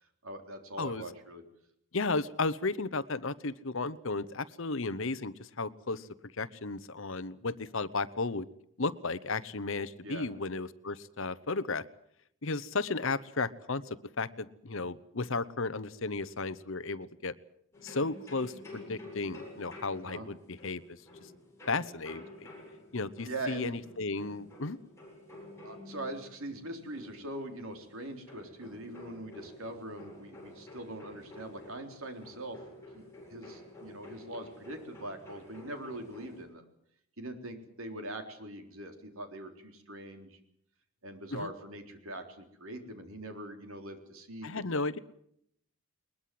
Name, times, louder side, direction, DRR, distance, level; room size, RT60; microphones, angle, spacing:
voice 1, 0.2-1.4 10.0-10.3 20.0-20.3 23.2-23.8 25.6-32.6 32.9-36.6 37.2-40.4 41.0-44.6, right 1 dB, 65° right, 5 dB, 3.8 m, -42 dB
voice 2, 1.9-6.1 6.4-8.5 8.8-11.8 12.4-17.3 17.8-21.0 21.7-22.5 22.9-24.8 41.3-41.5 44.4-45.0, left 3 dB, 60° left, 16 dB, 0.9 m, -34 dB
sound 1, 17.7-36.4, left 1 dB, 10° left, 7.3 m, -50 dB
21.5 x 21.0 x 7.7 m, 0.71 s
head